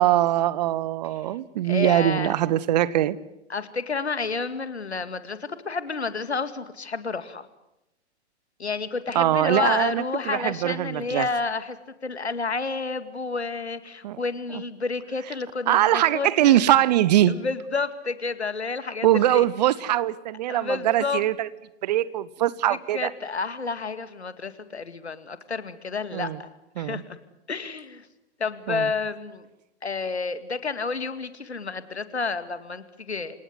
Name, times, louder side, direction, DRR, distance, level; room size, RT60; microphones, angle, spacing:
voice 1, 0.0-3.2 9.1-11.3 14.0-14.2 15.7-17.4 19.0-21.5 21.8-23.1 26.1-26.4 26.8-27.0 28.7-28.9, right 13 dB, 40° right, 19 dB, 1.0 m, -22 dB
voice 2, 1.6-2.4 3.5-7.5 8.6-11.8 12.0-16.6 17.3-19.4 20.5-21.2 22.7-26.5 26.8-27.2 27.5-28.1 28.4-29.5 29.8-33.3, left 4 dB, 75° left, 12 dB, 2.2 m, -30 dB
27.5 x 18.5 x 9.6 m, 0.92 s
figure-of-eight pair, 115°, 34 cm